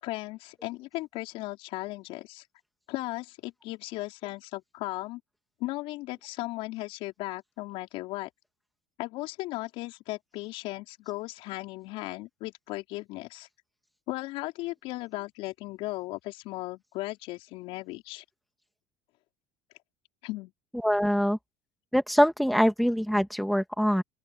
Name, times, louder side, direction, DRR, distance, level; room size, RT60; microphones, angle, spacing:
voice 1, 0.0-2.5 2.9-5.2 5.6-8.3 9.0-13.5 14.1-18.2 20.2-20.5, left 19 dB, 70° left, 4.9 m, -36 dB
voice 2, 20.8-21.4 21.9-24.0, equal, ahead, 2.2 m, -24 dB
open air
supercardioid pair, 95°, 10 cm